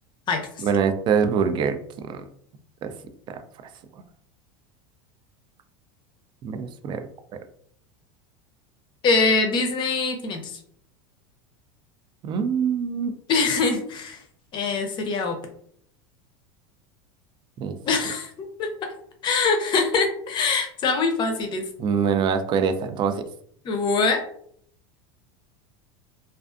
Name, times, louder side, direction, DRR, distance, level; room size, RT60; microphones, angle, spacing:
voice 1, 0.6-1.8 2.1-2.2 2.8-2.9 3.3-3.4 6.4-7.1 12.2-13.1 17.6-17.8 21.8-23.2, right 6 dB, 35° right, 8 dB, 0.3 m, -24 dB
voice 2, 9.0-10.5 13.3-14.2 14.5-15.4 17.9-18.3 18.6-18.9 19.2-21.6 23.6-24.2, left 4 dB, 35° left, 6 dB, 0.5 m, -23 dB
2.4 x 2.4 x 2.4 m, 0.64 s
supercardioid pair, 125°, 13 cm